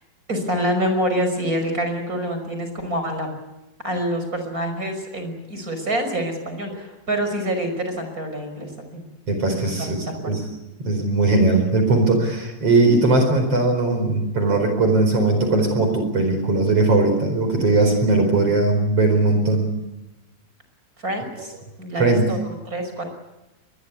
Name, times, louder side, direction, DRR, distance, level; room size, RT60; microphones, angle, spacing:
voice 1, 0.3-3.3 3.8-9.0 9.8-10.4 21.0-21.5 21.8-23.0, equal, 20° right, 6 dB, 5.6 m, -26 dB
voice 2, 9.3-10.4 10.8-19.7 22.0-22.3, right 2 dB, 35° right, 5 dB, 5.4 m, -19 dB
25.5 x 21.5 x 8.4 m, 0.99 s
omnidirectional pair, 4.6 m